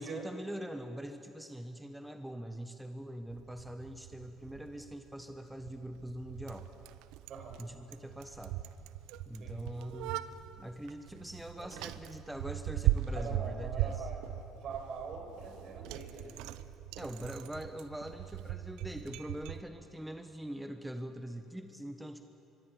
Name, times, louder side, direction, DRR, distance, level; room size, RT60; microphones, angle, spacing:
voice 1, 0.0-6.7 7.6-8.6 9.3-14.1 17.0-22.2, right 1 dB, 5° right, 7 dB, 1.5 m, -43 dB
Bicycle, 3.3-19.6, right 13 dB, 75° right, 0.8 m, -39 dB
voice 2, 7.3-7.6 9.4-9.7 11.6-11.7 13.1-14.2 14.5-16.4, right 5 dB, 55° right, 4 dB, 5.4 m, -43 dB
24.0 x 22.5 x 8.9 m, 3.0 s
hypercardioid pair, 60°, 0 cm